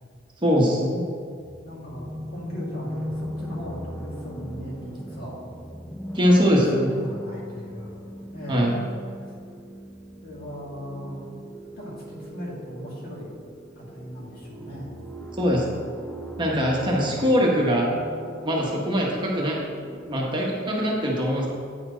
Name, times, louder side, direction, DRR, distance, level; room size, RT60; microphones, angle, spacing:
voice 1, 0.4-1.0 6.1-7.0 8.5-8.8 15.4-15.7 16.4-17.9 18.4-19.6 20.1-21.5, equal, 25° right, -3 dB, 1.0 m, -22 dB
sound 1, 1.4-20.1, equal, 5° left, 0.6 m, -39 dB
voice 2, 1.6-5.3 6.7-8.0 8.3-8.8 9.2-9.4 10.2-11.3 11.8-13.3 13.8-15.0 16.6-17.6, equal, 50° left, -5 dB, 2.1 m, -38 dB
9.0 x 4.3 x 5.0 m, 2.2 s
head